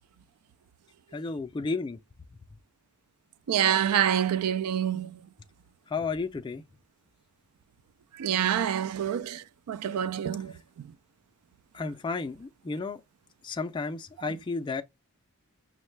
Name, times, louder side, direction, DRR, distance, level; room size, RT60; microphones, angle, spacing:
voice 1, 1.1-2.0 5.9-6.6 11.7-13.0 13.4-14.8, left 4 dB, 20° left, 0.3 m, -32 dB
voice 2, 3.5-5.2 8.2-10.5 10.8-10.9, right 9 dB, 80° right, 0.3 m, -27 dB
6.2 x 2.2 x 3.1 m
head